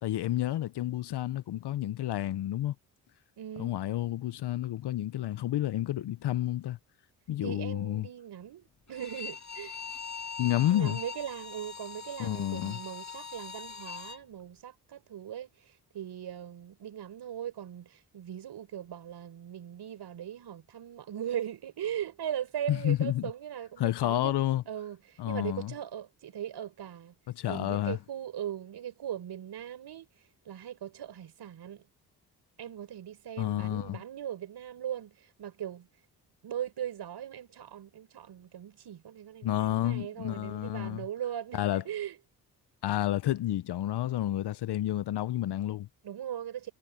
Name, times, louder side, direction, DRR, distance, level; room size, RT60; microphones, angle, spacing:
voice 1, 0.0-2.7 3.6-6.8 7.3-8.1 10.4-11.0 12.2-12.8 22.7-23.3 23.8-24.6 25.2-25.7 27.3-28.0 33.4-34.0 39.4-41.1 41.5-41.8 42.8-45.9, left 13 dB, 65° left, 1.2 m, -30 dB
voice 2, 3.4-3.7 7.4-9.8 10.7-27.1 27.5-30.1 30.4-31.9 32.6-35.9 36.4-42.2 46.0-46.7, right 10 dB, 65° right, 5.0 m, -39 dB
Bowed string instrument, 8.9-14.2, left 5 dB, 40° left, 5.9 m, -42 dB
hypercardioid pair, 50°, 44 cm